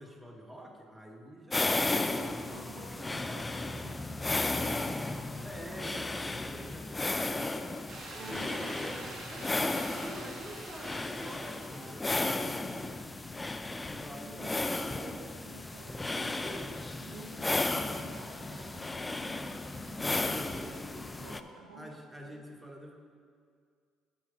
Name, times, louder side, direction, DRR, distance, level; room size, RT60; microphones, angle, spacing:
voice 1, 0.0-3.5 5.4-13.0 13.8-15.1 16.3-16.9 20.3-20.8 21.7-22.9, right 1 dB, 10° right, 2 dB, 1.3 m, -47 dB
sound 1, 1.5-21.4, left 2 dB, 20° left, 0.4 m, -34 dB
voice 2, 2.4-5.5 8.1-9.2 14.2-16.4 17.0-21.9 22.2-22.4, right 2 dB, 85° right, 0 dB, 1.3 m, -51 dB
sound 2, 7.9-11.9 12.2-12.3, right 2 dB, 45° right, 1.8 m, -46 dB
9.3 x 5.1 x 5.1 m, 2.1 s
supercardioid pair, 65°, 0 cm